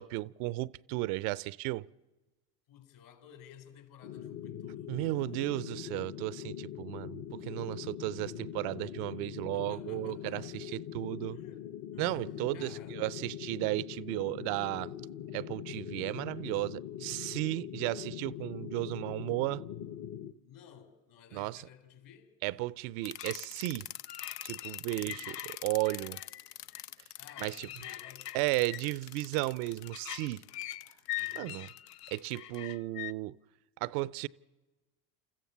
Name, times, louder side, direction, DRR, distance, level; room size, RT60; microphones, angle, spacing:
voice 1, 0.0-1.9 4.9-11.4 12.0-14.9 15.3-19.6 21.3-21.6 22.4-23.9 24.4-25.4 25.6-26.2 27.4-27.7 28.3-30.4 31.4-31.7 32.1-33.4 33.8-34.3, right 19 dB, 65° right, 0.6 m, -34 dB
voice 2, 2.7-5.1 9.5-10.7 11.3-12.2 12.5-13.0 20.4-22.4 25.0-25.3 27.1-28.7 31.1-31.6, left 9 dB, 65° left, 4.2 m, -56 dB
sound 1, 4.0-20.3, left 10 dB, 45° left, 1.1 m, -42 dB
sound 2, 23.0-33.1, left 13 dB, 80° left, 0.7 m, -42 dB
28.0 x 14.5 x 7.1 m
hypercardioid pair, 75°, 47 cm